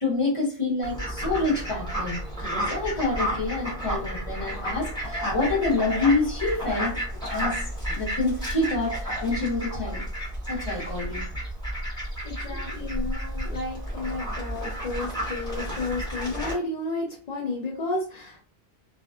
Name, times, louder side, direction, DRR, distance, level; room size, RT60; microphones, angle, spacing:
voice 1, 0.0-7.6 7.9-10.0 10.5-11.2 12.5-12.6, left 3 dB, 30° left, 0.9 m, -27 dB
Fowl, 0.8-16.5, equal, 5° left, 0.9 m, -32 dB
voice 2, 12.2-18.4, left 2 dB, 55° left, 0.4 m, -32 dB
2.5 x 2.3 x 2.3 m
omnidirectional pair, 1.2 m